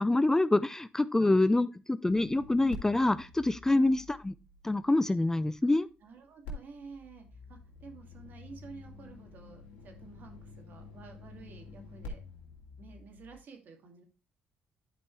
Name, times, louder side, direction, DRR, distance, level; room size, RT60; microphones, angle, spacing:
voice 1, 0.0-4.3 4.6-5.9, left 2 dB, 15° left, 15 dB, 0.4 m, -26 dB
sound 1, 2.1-5.2 6.4-13.4, left 3 dB, 80° left, 2.3 m, -48 dB
voice 2, 3.7-4.0 6.0-12.3 12.8-14.0, right 5 dB, 60° right, 4 dB, 2.3 m, -51 dB
10.0 x 5.3 x 3.2 m, 0.30 s
supercardioid pair, 70°, 4 cm